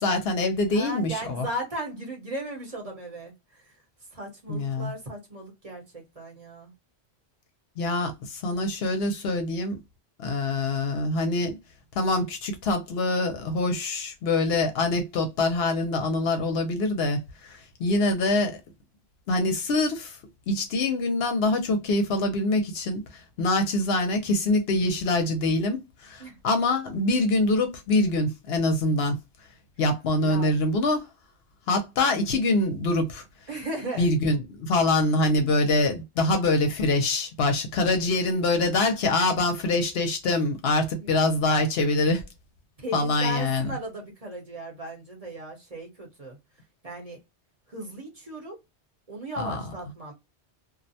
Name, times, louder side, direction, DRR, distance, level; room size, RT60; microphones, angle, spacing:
voice 1, 0.0-1.5 4.5-4.9 7.8-9.8 10.2-11.6 12.0-18.6 19.3-20.2 20.5-29.2 29.8-31.1 31.7-33.2 34.0-42.3 42.9-43.7 49.4-49.6, left 2 dB, 70° left, 0.8 m, -25 dB
voice 2, 0.7-3.7 4.1-6.7 26.2-26.4 30.2-30.5 33.5-34.1 40.9-41.2 42.8-46.4 46.8-47.2 47.7-48.6 49.1-50.1, right 1 dB, 35° right, 0.9 m, -36 dB
2.4 x 2.1 x 2.6 m
omnidirectional pair, 1.2 m